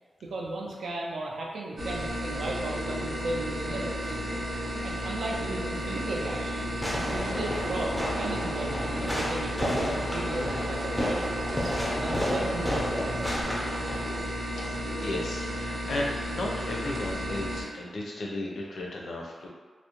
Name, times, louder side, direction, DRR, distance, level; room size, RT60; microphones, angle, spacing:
voice 1, 0.2-4.2 4.8-6.6 7.0-11.5 11.9-13.4, right 2 dB, 75° right, -2 dB, 0.4 m, -35 dB
sound 1, 1.8-17.6, equal, 35° right, 0.6 m, -33 dB
Fireworks, 6.8-14.2, equal, 5° left, 0.4 m, -32 dB
voice 2, 14.6-19.5, left 2 dB, 70° left, -2 dB, 0.4 m, -35 dB
2.4 x 2.0 x 2.8 m, 1.4 s
wide cardioid pair, 145°, 0 cm